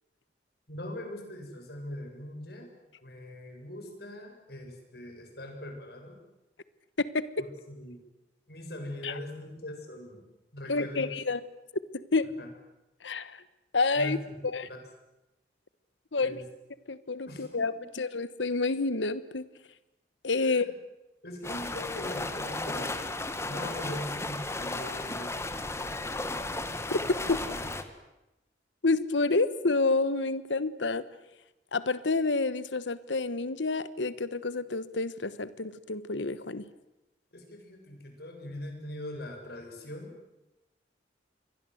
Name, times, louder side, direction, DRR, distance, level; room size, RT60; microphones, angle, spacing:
voice 1, 0.7-2.7 3.0-6.2 7.7-8.0 8.5-10.2 10.5-11.2 12.4-12.5 14.0-14.2 14.7-14.8 16.2-16.4 17.3-17.9 20.4-20.7 21.2-23.0 23.5-25.9 27.2-27.7 37.3-40.1, left 1 dB, 60° left, 4 dB, 7.4 m, -41 dB
voice 2, 7.0-7.5 9.0-9.1 10.7-11.4 12.1-12.3 13.0-13.4 13.7-14.2 14.5-14.7 16.1-16.4 16.9-19.5 20.2-20.7 26.9-27.0 27.3-27.4 28.8-31.0 31.7-36.6, left 3 dB, 85° left, 15 dB, 1.2 m, -29 dB
sound 1, 21.4-27.8, left 2 dB, 15° left, 1.8 m, -34 dB
29.5 x 23.0 x 7.9 m, 0.96 s
head